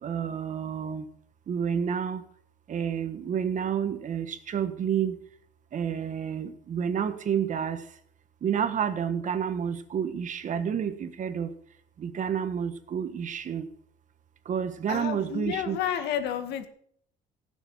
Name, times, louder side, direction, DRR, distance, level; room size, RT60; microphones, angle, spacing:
voice 1, 0.0-1.0 1.5-2.2 2.7-5.2 5.7-7.9 8.4-11.5 12.0-13.7 14.4-15.8, right 8 dB, 50° right, 10 dB, 1.5 m, -29 dB
voice 2, 14.9-16.7, left 10 dB, 85° left, 8 dB, 1.9 m, -30 dB
16.0 x 7.2 x 7.4 m, 0.65 s
cardioid pair, 110°, 17 cm